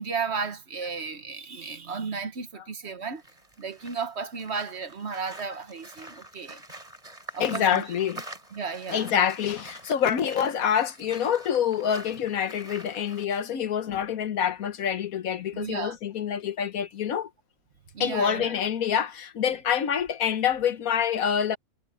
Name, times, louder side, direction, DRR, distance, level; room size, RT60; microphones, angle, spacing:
voice 1, 0.0-3.2 3.6-6.6 7.3-7.8 8.5-9.2 15.5-16.0 17.9-18.6, right 5 dB, 50° right, 1.4 m, -34 dB
sound 1, 3.1-13.2, right 1 dB, 25° right, 4.2 m, -45 dB
voice 2, 7.4-8.2 8.9-17.3 18.0-21.6, left 8 dB, 75° left, 1.4 m, -26 dB
omnidirectional pair, 1.5 m